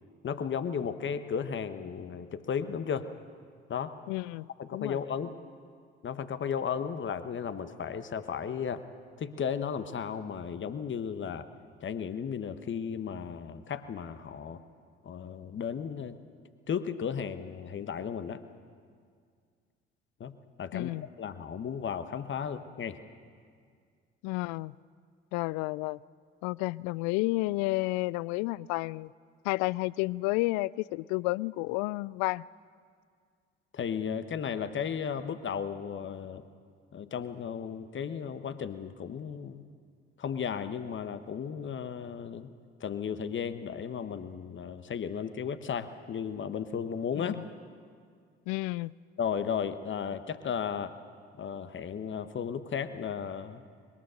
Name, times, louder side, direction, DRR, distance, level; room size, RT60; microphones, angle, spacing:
voice 1, 0.2-3.1 3.7-3.9 4.6-5.3 6.0-8.8 9.2-11.5 11.8-14.6 15.0-16.2 16.7-18.4 20.2-20.3 20.6-20.9 21.2-23.0 33.7-36.4 36.9-39.6 40.2-42.5 42.8-47.4 49.2-50.9 51.4-53.6, left 7 dB, 35° left, 11 dB, 1.2 m, -34 dB
voice 2, 4.1-5.0 20.7-21.1 24.2-24.7 25.3-26.0 26.4-29.1 29.4-32.4 47.1-47.4 48.5-48.9, left 21 dB, 60° left, 24 dB, 0.4 m, -31 dB
21.5 x 21.0 x 6.4 m, 2.1 s
figure-of-eight pair, 50°, 32 cm